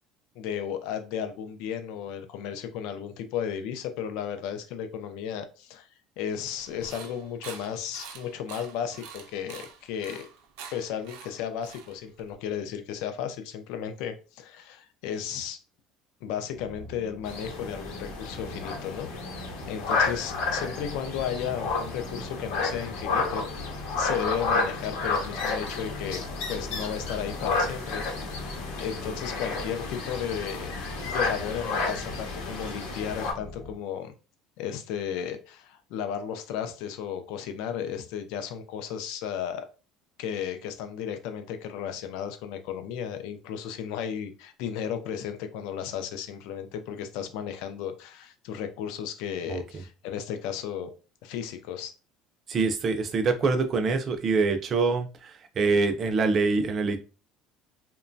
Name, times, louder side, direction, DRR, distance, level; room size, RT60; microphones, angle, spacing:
voice 1, 0.4-5.9 6.2-10.3 10.7-15.6 16.2-26.2 26.5-28.0 28.3-28.4 28.8-30.7 31.0-34.1 34.6-39.7 40.2-50.9 51.2-51.9, left 8 dB, 70° left, 8 dB, 0.4 m, -34 dB
sound 1, 6.6-12.3, right 7 dB, 85° right, 0.5 m, -46 dB
sound 2, 16.5-33.7, left 1 dB, 35° left, 0.7 m, -43 dB
sound 3, 17.2-33.3, left 4 dB, 85° left, 0.9 m, -31 dB
voice 2, 49.5-49.8 52.5-57.0, right 4 dB, 30° right, 6 dB, 0.4 m, -25 dB
2.9 x 2.2 x 2.5 m, 0.33 s
cardioid pair, 165°, 0 cm